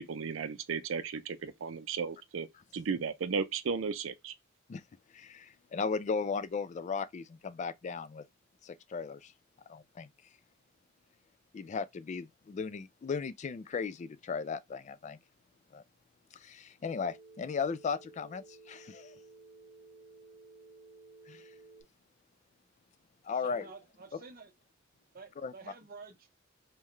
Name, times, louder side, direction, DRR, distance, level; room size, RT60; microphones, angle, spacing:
voice 1, 0.0-2.5 2.7-4.3, right 5 dB, 75° right, 0.5 m, -35 dB
voice 2, 5.1-8.2 8.6-9.3 9.7-10.1 11.5-15.2 15.7-15.8 16.4-19.1 21.3-21.4 23.2-23.6 25.4-25.5, left 5 dB, 35° left, 0.3 m, -36 dB
Telephone, 16.8-21.8, right 3 dB, 15° right, 1.1 m, -55 dB
voice 3, 23.3-24.5 24.9-26.3, right 4 dB, 45° right, 0.8 m, -50 dB
5.4 x 2.2 x 3.1 m
head